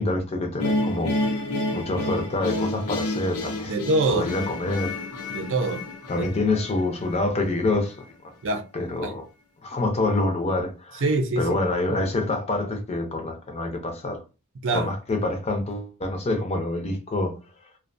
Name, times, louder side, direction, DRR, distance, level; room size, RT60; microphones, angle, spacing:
voice 1, 0.0-1.4 1.7-3.8 4.1-4.9 6.1-8.1 8.7-9.3 9.6-11.0 11.4-14.2 14.7-17.4, left 2 dB, 30° left, 0.5 m, -26 dB
sound 1, 0.6-7.7, left 2 dB, 85° left, 0.5 m, -30 dB
voice 2, 3.7-4.3 5.3-5.9 6.2-6.3 8.4-8.6 9.0-9.1 11.0-11.5 11.9-12.0 14.6-14.9, right 2 dB, 55° right, 0.5 m, -24 dB
2.4 x 2.2 x 2.5 m
head